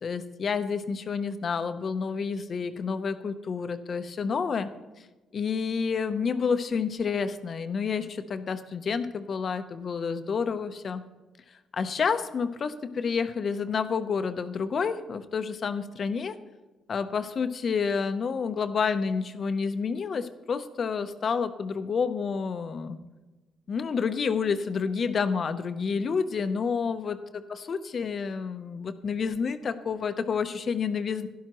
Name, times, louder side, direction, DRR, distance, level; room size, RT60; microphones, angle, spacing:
voice 1, 0.0-4.7 5.3-11.0 11.7-16.3 16.9-23.0 23.7-31.3, left 5 dB, 50° left, 11 dB, 0.7 m, -29 dB
12.0 x 11.0 x 3.0 m, 1.2 s
cardioid pair, 90°, 0 cm